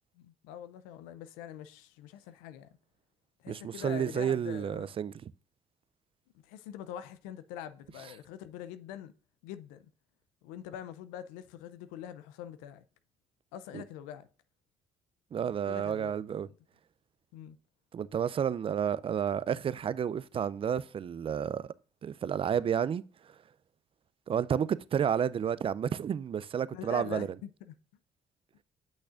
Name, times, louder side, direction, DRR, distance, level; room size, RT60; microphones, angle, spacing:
voice 1, 0.2-2.7 3.4-4.9 6.4-9.1 9.4-9.9 10.4-12.8 13.5-14.3 15.7-16.2 16.5-16.6 17.3-17.6 26.7-27.8, left 10 dB, 90° left, 0.5 m, -44 dB
voice 2, 3.5-5.1 13.7-13.8 15.3-16.5 17.9-21.7 22.0-23.0 24.3-27.3, right 8 dB, 40° right, 0.4 m, -31 dB
8.5 x 6.1 x 2.4 m
supercardioid pair, 60°, 14 cm